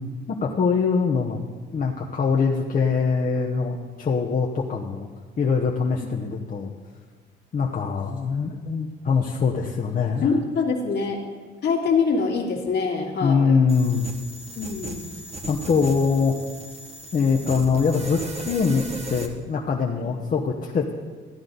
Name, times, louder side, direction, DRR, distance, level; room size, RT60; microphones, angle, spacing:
voice 1, 0.3-1.4 1.7-5.1 5.4-6.7 7.5-10.3 13.2-14.1 15.5-16.3 17.1-18.8 19.1-20.9, left 5 dB, 45° left, -1 dB, 1.0 m, -23 dB
voice 2, 10.2-11.2 11.6-13.5 14.6-15.1 20.0-20.1, left 5 dB, 60° left, 1 dB, 1.9 m, -24 dB
sound 1, 13.7-19.3, right 1 dB, 35° right, 1.2 m, -37 dB
14.0 x 9.5 x 4.0 m, 1.5 s
cardioid pair, 90°, 20 cm